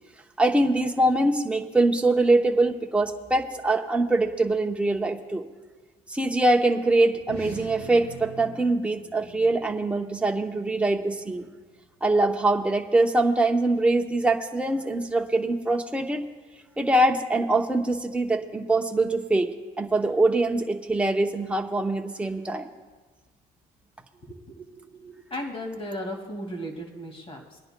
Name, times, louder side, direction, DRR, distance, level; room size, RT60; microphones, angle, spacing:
voice 1, 0.4-5.4 6.1-11.5 12.0-16.2 16.8-22.7, right 2 dB, 5° right, 3 dB, 0.8 m, -23 dB
sound 1, 7.1-11.9, equal, 70° left, 4.5 m, -45 dB
voice 2, 24.3-27.6, equal, 35° left, 2 dB, 2.1 m, -36 dB
24.0 x 10.5 x 2.2 m, 1.3 s
cardioid pair, 110°, 17 cm